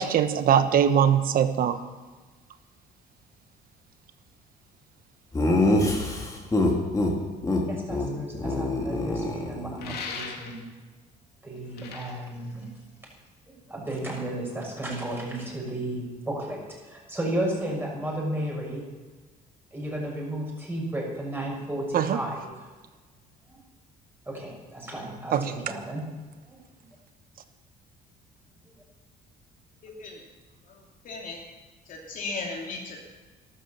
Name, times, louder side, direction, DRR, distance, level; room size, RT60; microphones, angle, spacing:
voice 1, 0.0-1.8 21.9-22.2 25.3-25.5, right 8 dB, 60° right, 10 dB, 1.2 m, -21 dB
Laughter, 5.3-7.1 7.4-7.6 7.9-8.1 8.3-9.9, left 2 dB, 20° left, 2.9 m, -24 dB
voice 2, 7.7-10.7 11.4-12.7 13.5-18.9 19.7-22.7 23.5-23.6 24.2-26.1 26.5-26.6, right 1 dB, 15° right, -2 dB, 6.7 m, -33 dB
sound 1, 9.8-10.8 11.6-13.3, left 5 dB, 70° left, 2.5 m, -39 dB
voice 3, 29.8-30.2 30.7-31.4 31.9-33.0, left 3 dB, 55° left, -1 dB, 2.8 m, -36 dB
13.0 x 12.5 x 7.1 m, 1.3 s
cardioid pair, 110°, 17 cm